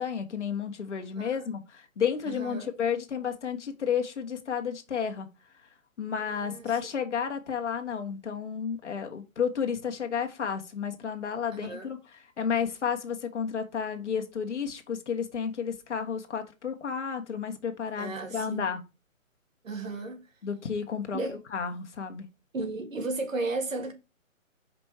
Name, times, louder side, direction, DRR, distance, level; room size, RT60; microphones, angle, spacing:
voice 1, 0.0-5.3 6.0-18.8 20.4-21.2 21.5-22.3, left 7 dB, 55° left, 1.4 m, -32 dB
voice 2, 1.2-1.5 2.3-2.7 6.4-6.8 11.5-11.9 18.0-18.7 19.6-20.2 21.1-21.4 22.5-23.9, right 3 dB, 70° right, 1.9 m, -34 dB
5.2 x 4.3 x 4.7 m
figure-of-eight pair, 150°, 41 cm